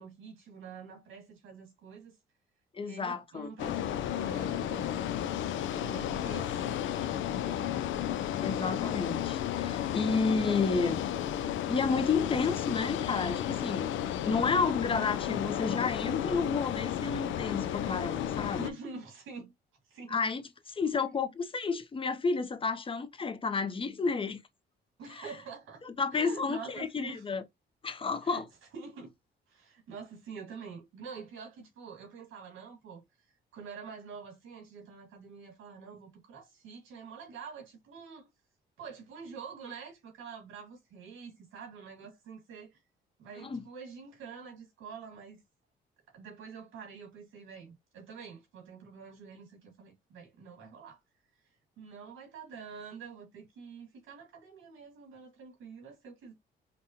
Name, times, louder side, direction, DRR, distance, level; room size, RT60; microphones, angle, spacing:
voice 1, 0.0-2.1 2.8-5.0 5.7-7.8 10.4-11.0 11.4-11.6 18.6-19.5 19.8-20.2 25.0-25.8 26.1-27.2 28.2-28.5 28.7-29.1 29.5-33.0 33.5-38.3 38.8-42.8 43.2-45.4 46.1-51.0 51.8-56.3, right 5 dB, 90° right, 1.9 m, -46 dB
voice 2, 2.7-3.5 8.4-11.0 11.7-13.9 14.2-18.7 20.1-24.4 25.1-25.3 25.8-27.4 27.8-28.4 43.4-43.6, left 4 dB, 25° left, 0.6 m, -31 dB
sound 1, 3.6-18.7, left 10 dB, 75° left, 0.5 m, -33 dB
5.2 x 2.2 x 2.8 m
cardioid pair, 90°, 20 cm